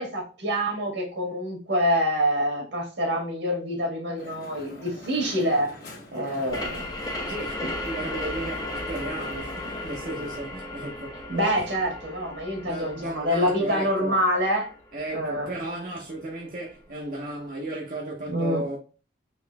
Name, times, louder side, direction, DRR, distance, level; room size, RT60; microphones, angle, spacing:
voice 1, 0.0-5.7 6.1-6.9 11.3-14.7 15.1-15.5 18.3-18.6, equal, 75° right, 1.9 m, -26 dB
Crowd, 4.2-10.4, left 1 dB, 50° left, 1.3 m, -44 dB
sound 1, 6.5-15.9, left 1 dB, 20° left, 0.8 m, -36 dB
voice 2, 7.2-11.7 12.6-14.2 14.9-18.8, right 1 dB, 45° right, 0.8 m, -35 dB
4.2 x 3.1 x 3.4 m
head